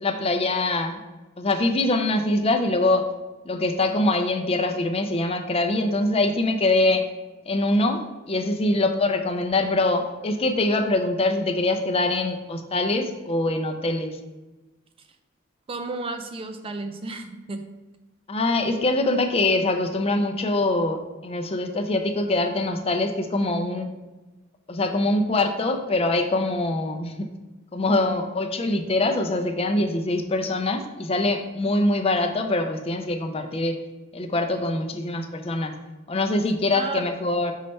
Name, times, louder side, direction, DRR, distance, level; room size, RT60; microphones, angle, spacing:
voice 1, 0.0-1.0 1.4-3.1 3.4-7.0 7.5-14.1 18.3-23.9 24.7-27.3 27.7-33.8 34.1-35.7 36.1-37.5, left 2 dB, 30° left, 5 dB, 0.5 m, -24 dB
voice 2, 15.7-17.6 36.7-37.1, right 3 dB, 30° right, 7 dB, 0.4 m, -32 dB
5.6 x 3.3 x 5.3 m, 1.1 s
head